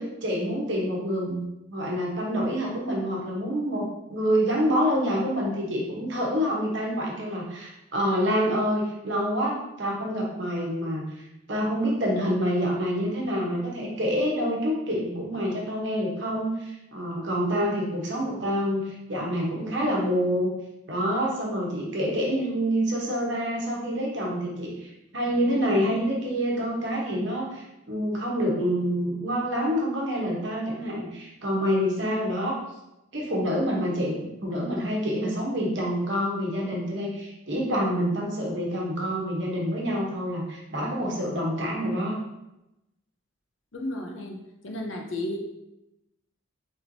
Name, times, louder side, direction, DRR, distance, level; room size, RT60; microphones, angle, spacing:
voice 1, 0.0-1.4 1.7-11.0 11.5-20.5 20.9-32.6 33.1-42.2, equal, 60° right, -2 dB, 1.1 m, -27 dB
voice 2, 43.7-44.4 44.6-45.4, left 1 dB, 70° left, 2 dB, 0.7 m, -32 dB
4.3 x 3.5 x 2.7 m, 0.92 s
head